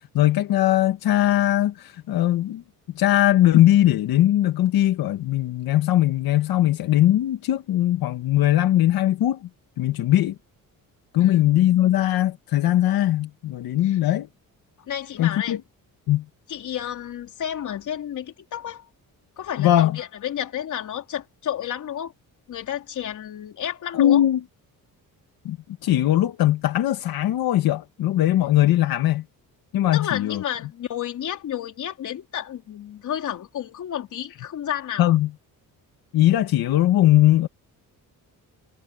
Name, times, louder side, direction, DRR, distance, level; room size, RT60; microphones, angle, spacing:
voice 1, 0.1-2.6 2.9-9.5 9.8-10.3 11.1-14.3 15.2-15.6 16.1-16.2 19.6-19.9 23.9-24.4 25.4-25.6 25.8-29.2 29.7-30.4 35.0-35.3 36.1-37.5, left 13 dB, 85° left, 1.5 m, -20 dB
voice 2, 14.8-15.6 16.5-18.8 19.4-22.1 22.5-24.2 29.9-35.2, left 10 dB, 55° left, 3.7 m, -31 dB
cardioid pair, 170°, 35 cm